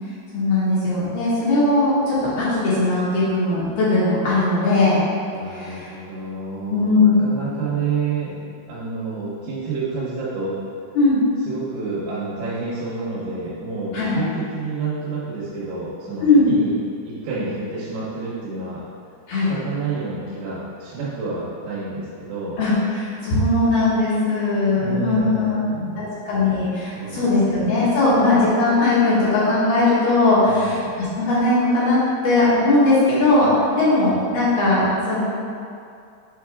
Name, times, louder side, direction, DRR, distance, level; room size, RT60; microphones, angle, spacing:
voice 1, 0.3-5.0 5.5-5.8 6.7-7.1 10.9-11.3 13.9-14.2 16.2-16.5 19.3-19.5 22.6-30.8 31.1-35.2, left 2 dB, 65° left, -10 dB, 3.0 m, -19 dB
voice 2, 5.3-8.4 8.7-10.6 11.4-16.7 17.0-18.8 19.5-22.6 24.7-26.2 26.9-27.8 28.1-28.3 30.4-30.9, right 4 dB, 70° right, -8 dB, 2.8 m, -29 dB
7.9 x 4.3 x 3.5 m, 2.4 s
omnidirectional pair, 5.4 m